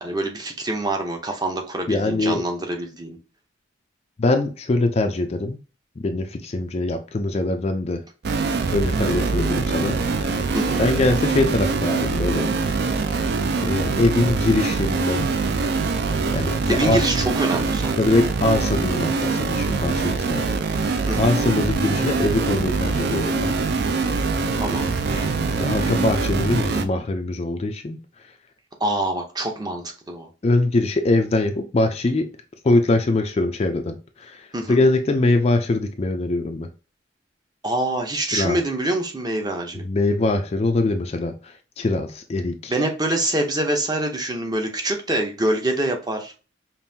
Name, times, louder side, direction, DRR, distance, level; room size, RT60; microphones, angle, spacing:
voice 1, 0.0-3.2 10.5-10.9 16.7-17.9 21.1-21.3 24.6-24.9 28.8-30.3 34.5-34.8 37.6-39.8 42.7-46.3, right 1 dB, 20° right, 3 dB, 0.7 m, -25 dB
voice 2, 1.9-2.4 4.2-5.6 6.0-8.0 8.7-10.4 10.8-12.5 12.8-13.0 13.6-15.3 16.3-17.0 18.0-20.4 20.7-23.6 25.1-28.3 30.4-32.3 32.6-36.7 38.3-38.6 39.8-42.7, left 2 dB, 30° left, 6 dB, 0.4 m, -23 dB
sound 1, 8.2-26.8, right 4 dB, 55° right, 0.4 m, -23 dB
5.4 x 2.5 x 2.7 m, 0.35 s
head